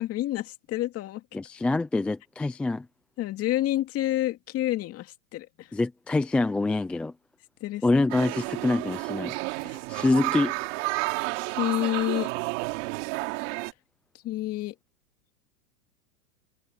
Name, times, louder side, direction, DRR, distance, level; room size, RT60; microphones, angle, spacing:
voice 1, 0.0-1.2 3.2-5.7 7.6-7.8 9.6-9.8 11.6-12.3 14.2-14.7, left 14 dB, 30° left, 2.4 m, -28 dB
voice 2, 1.3-2.9 5.7-7.1 7.8-10.5, left 2 dB, 5° left, 0.3 m, -26 dB
sound 1, 8.1-13.7, right 27 dB, 50° right, 3.0 m, -31 dB
hypercardioid pair, 135°, 46 cm